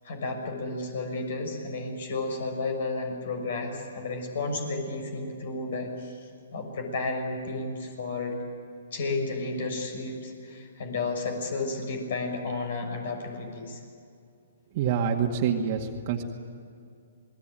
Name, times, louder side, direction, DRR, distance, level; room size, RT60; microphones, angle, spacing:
voice 1, 0.0-8.4 8.9-13.8, left 3 dB, 60° left, 4 dB, 6.6 m, -32 dB
voice 2, 14.7-16.2, right 7 dB, 40° right, 1 dB, 2.0 m, -26 dB
28.0 x 20.0 x 9.2 m, 2.4 s
hypercardioid pair, 130°, 0 cm